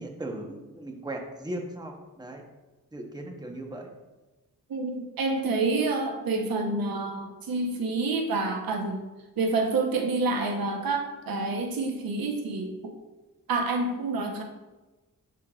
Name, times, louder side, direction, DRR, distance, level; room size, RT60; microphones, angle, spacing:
voice 1, 0.0-2.4 2.9-3.9, right 1 dB, 10° right, 2 dB, 0.9 m, -37 dB
voice 2, 4.7-9.0 9.4-12.9 13.5-14.4, right 3 dB, 90° right, 3 dB, 1.0 m, -28 dB
13.0 x 4.6 x 2.4 m, 1.1 s
wide cardioid pair, 115°, 34 cm